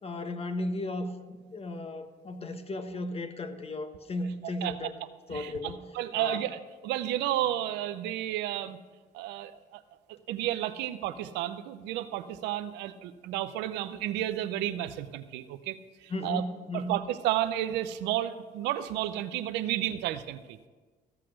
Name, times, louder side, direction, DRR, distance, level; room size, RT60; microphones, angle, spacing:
voice 1, 0.0-4.9 5.3-5.9 6.1-6.4 16.1-17.0, left 1 dB, 35° left, 8 dB, 1.2 m, -35 dB
voice 2, 4.4-4.9 5.3-8.8 9.1-9.8 10.1-16.4 16.7-20.6, right 13 dB, 85° right, 11 dB, 0.6 m, -32 dB
15.0 x 5.8 x 6.4 m, 1.3 s
supercardioid pair, 60°, 18 cm